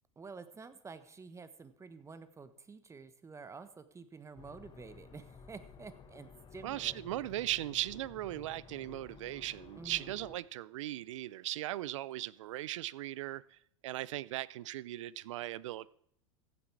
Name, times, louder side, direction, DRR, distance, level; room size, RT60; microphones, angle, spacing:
voice 1, 0.2-7.0 9.8-10.1, right 4 dB, 20° right, 12 dB, 1.4 m, -50 dB
sound 1, 4.4-10.4, left 5 dB, 30° left, 1.6 m, -54 dB
voice 2, 6.6-15.9, right 15 dB, 75° right, 22 dB, 0.6 m, -38 dB
15.5 x 9.5 x 4.8 m, 0.69 s
hypercardioid pair, 100°, 16 cm